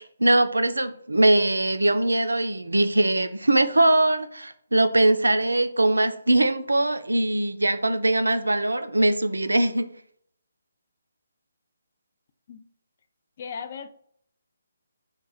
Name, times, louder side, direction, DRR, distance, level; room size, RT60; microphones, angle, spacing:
voice 1, 0.0-9.9, right 1 dB, 85° right, 0.3 m, -21 dB
voice 2, 13.4-13.9, left 6 dB, 45° left, 0.3 m, -36 dB
3.0 x 2.1 x 3.9 m
figure-of-eight pair, 145°, 0 cm